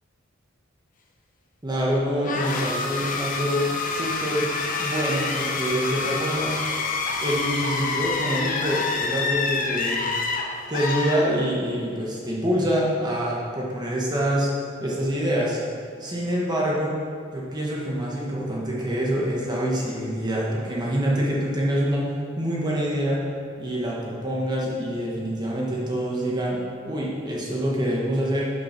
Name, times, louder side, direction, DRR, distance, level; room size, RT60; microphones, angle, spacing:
voice 1, 1.6-3.6 3.9-4.5 4.8-6.7 7.2-10.1 10.7-14.5 14.8-15.6 16.0-17.0 17.3-23.2 23.6-28.5, equal, 20° right, -4 dB, 1.2 m, -26 dB
sound 1, 2.2-11.8, left 4 dB, 45° left, 0.7 m, -27 dB
8.3 x 5.4 x 5.9 m, 2.2 s
head